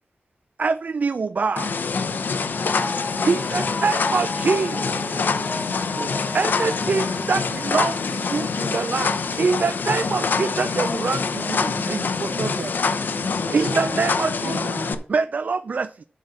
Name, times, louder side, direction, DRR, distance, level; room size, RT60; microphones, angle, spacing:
voice 1, 0.6-1.8 3.2-5.0 6.3-12.7 13.5-14.6 15.1-16.0, right 4 dB, 60° right, 0.4 m, -25 dB
sound 1, 1.6-14.9, left 5 dB, 85° left, 0.8 m, -25 dB
sound 2, 1.6-8.2 8.6-8.7, left 2 dB, 15° left, 2.9 m, -35 dB
voice 2, 2.1-3.2 4.4-4.5 11.8-12.8 13.1-13.6, equal, 5° right, 0.8 m, -38 dB
sound 3, 2.5-12.9, left 3 dB, 55° left, 5.0 m, -48 dB
voice 3, 4.6-6.1 13.5-15.0, right 3 dB, 90° right, 1.1 m, -35 dB
8.5 x 4.1 x 6.9 m
wide cardioid pair, 115°, 3 cm